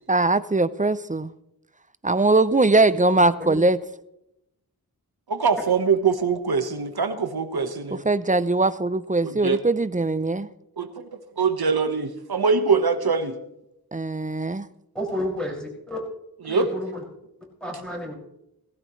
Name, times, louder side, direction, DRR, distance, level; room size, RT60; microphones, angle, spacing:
voice 1, 0.1-1.3 2.0-3.8 8.1-10.5 13.9-14.7, right 2 dB, 20° right, 15 dB, 0.5 m, -21 dB
voice 2, 5.3-8.0 9.2-9.6 10.8-11.0 11.4-13.4 16.4-16.7, right 5 dB, 75° right, 8 dB, 1.3 m, -23 dB
voice 3, 14.9-16.0 16.4-17.0 17.6-18.1, equal, ahead, -3 dB, 6.0 m, -30 dB
18.0 x 16.0 x 3.2 m, 0.84 s
wide cardioid pair, 70°, 38 cm